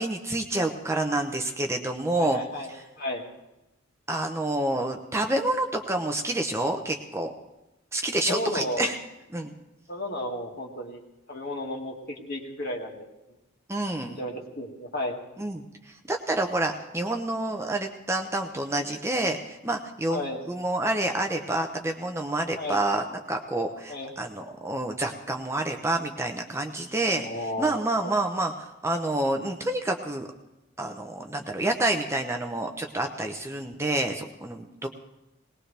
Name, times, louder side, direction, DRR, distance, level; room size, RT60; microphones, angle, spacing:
voice 1, 0.0-2.4 2.7-2.8 4.1-7.3 7.9-8.9 9.3-9.5 13.7-14.2 15.4-20.2 20.5-30.3 30.8-34.9, right 2 dB, 10° right, 4 dB, 0.8 m, -28 dB
voice 2, 2.1-3.3 8.2-8.9 9.9-11.0 11.3-13.1 14.2-15.2 20.1-20.4 22.6-22.8 23.9-24.1 27.2-28.1, left 1 dB, 45° left, 1 dB, 2.2 m, -33 dB
20.0 x 19.5 x 3.4 m, 0.99 s
head